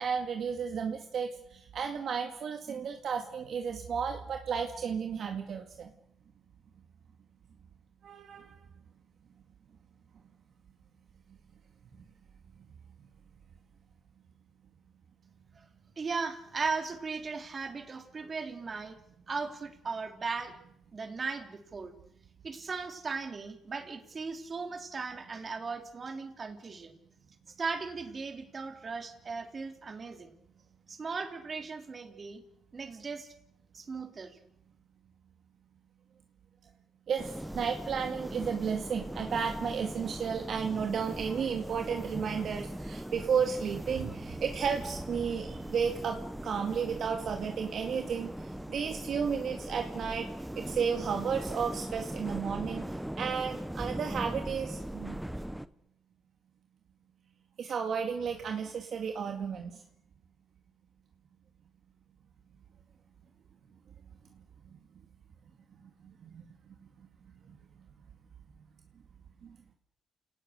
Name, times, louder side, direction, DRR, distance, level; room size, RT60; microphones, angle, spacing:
voice 1, 0.0-5.9 8.0-8.6 37.1-50.3 50.6-52.9 53.2-55.2 57.6-59.8 66.0-66.5 69.4-69.6, right 6 dB, 60° right, 4 dB, 2.1 m, -33 dB
voice 2, 16.0-19.0 19.3-20.6 20.9-21.9 22.4-26.9 27.6-30.4 30.9-32.4 32.7-33.3 33.7-34.3, right 4 dB, 40° right, 5 dB, 3.4 m, -37 dB
sound 1, 37.2-55.7, right 1 dB, 5° right, 1.0 m, -40 dB
29.5 x 18.5 x 6.7 m, 0.76 s
cardioid pair, 90°, 0 cm